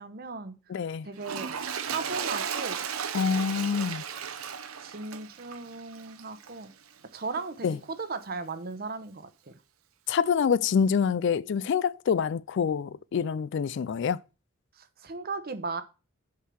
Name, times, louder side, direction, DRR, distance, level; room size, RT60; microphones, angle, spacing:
voice 1, 0.0-0.6 1.0-1.5 1.8-2.9 4.8-6.7 7.1-9.6 14.7-15.8, right 4 dB, 45° right, 0.9 m, -37 dB
voice 2, 0.7-1.1 3.1-4.0 7.6-7.8 10.1-14.2, left 6 dB, 60° left, 0.3 m, -26 dB
Toilet flush, 1.2-6.6 7.3-7.4, right 7 dB, 85° right, 0.8 m, -35 dB
6.7 x 4.6 x 6.3 m
head